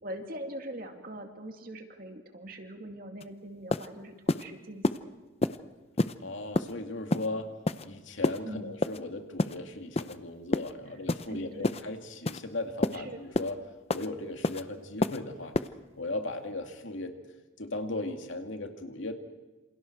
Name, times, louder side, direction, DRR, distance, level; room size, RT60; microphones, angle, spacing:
voice 1, 0.0-5.1 8.4-8.7 11.3-11.7 12.9-13.2, right 1 dB, 45° right, 4 dB, 2.4 m, -42 dB
sound 1, 3.2-3.3 3.7-3.9 4.3-4.4 4.8-5.0 5.4-5.6 6.0-6.1 6.5-6.7 7.1-7.3 7.7-7.9 8.2-8.4 8.8-9.0 9.4-9.6 10.0-10.1 10.5-10.7 11.1-11.3 11.6-11.8 12.3-12.4 12.8-13.0 13.3-13.5 13.9-14.1 14.4-14.6 15.0-15.2 15.5-15.7, left 2 dB, 30° left, 0.6 m, -28 dB
voice 2, 6.2-7.5 7.8-13.6 13.9-15.6 16.0-17.2 17.6-19.1, left 2 dB, 70° left, 4 dB, 2.4 m, -37 dB
28.0 x 28.0 x 4.7 m, 1.3 s
head